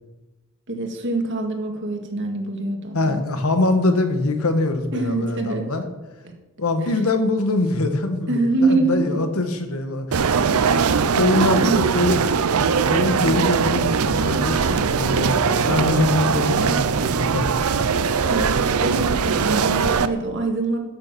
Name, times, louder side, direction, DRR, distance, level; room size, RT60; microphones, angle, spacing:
voice 1, 0.7-3.2 4.9-5.7 6.8-6.9 8.3-9.0 10.7-11.0 11.3-11.9 18.3-20.8, right 2 dB, 55° right, 3 dB, 1.9 m, -24 dB
voice 2, 2.9-5.8 6.6-10.6 11.2-12.2 12.9-16.7 17.0-17.7, left 2 dB, 70° left, 7 dB, 1.4 m, -23 dB
sound 1, 10.1-20.1, right 5 dB, 75° right, 0.6 m, -20 dB
12.5 x 6.8 x 5.9 m, 1.1 s
head